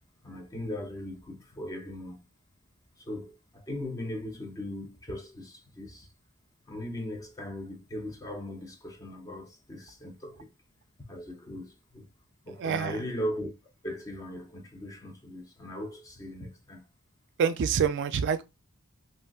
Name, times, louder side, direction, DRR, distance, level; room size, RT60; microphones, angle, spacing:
voice 1, 0.2-2.2 3.0-6.1 6.7-10.5 11.1-12.1 12.5-13.5 13.8-16.9, left 1 dB, 15° left, 0.5 m, -38 dB
voice 2, 12.6-13.0 17.4-18.4, right 7 dB, 55° right, 0.3 m, -26 dB
3.6 x 2.5 x 2.2 m
head